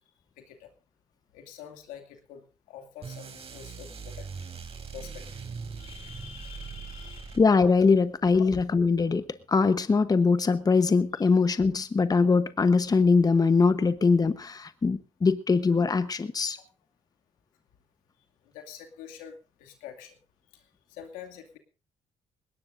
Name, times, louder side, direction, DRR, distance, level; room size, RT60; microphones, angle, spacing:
voice 1, 0.4-0.7 1.3-4.3 4.9-5.4 5.8-7.4 11.1-11.2 18.4-20.2 20.5-20.6 20.9-21.6, left 9 dB, 85° left, 4 dB, 2.4 m, -46 dB
sound 1, 3.0-7.8, right 5 dB, 45° right, 3.8 m, -41 dB
voice 2, 7.4-16.6, left 4 dB, 30° left, 12 dB, 1.1 m, -22 dB
20.5 x 18.0 x 2.6 m, 0.32 s
supercardioid pair, 65°, 13 cm